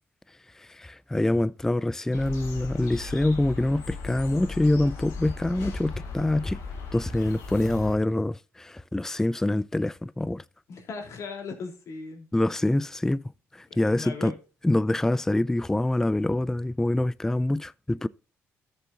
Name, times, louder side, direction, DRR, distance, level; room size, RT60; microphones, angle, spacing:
voice 1, 0.6-6.6 6.9-10.4 12.3-13.2 13.5-14.3 14.6-18.1, left 1 dB, 10° left, 0.3 m, -25 dB
sound 1, 2.1-7.9, left 4 dB, 90° left, 2.8 m, -37 dB
voice 2, 10.7-12.3 13.7-14.4, left 5 dB, 65° left, 3.5 m, -38 dB
13.5 x 7.1 x 2.7 m
supercardioid pair, 70°, 6 cm